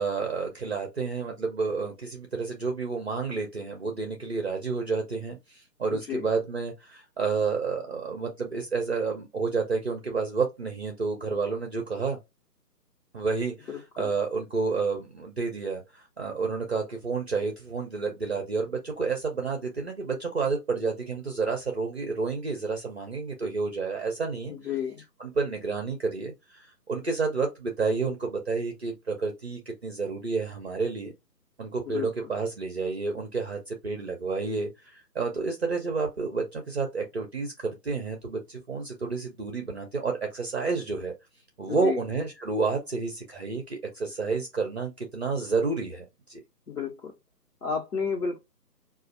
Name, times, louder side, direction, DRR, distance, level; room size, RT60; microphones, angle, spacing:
voice 1, 0.0-12.2 13.1-13.7 14.0-24.5 25.2-31.1 31.6-41.1 41.6-46.4, right 4 dB, 40° right, 0.6 m, -30 dB
voice 2, 5.9-6.3 13.7-14.1 24.5-25.0 31.9-32.3 41.7-42.0 46.7-47.1 47.6-48.4, left 6 dB, 65° left, 1.2 m, -32 dB
4.1 x 2.4 x 2.4 m
figure-of-eight pair, 150°, 49 cm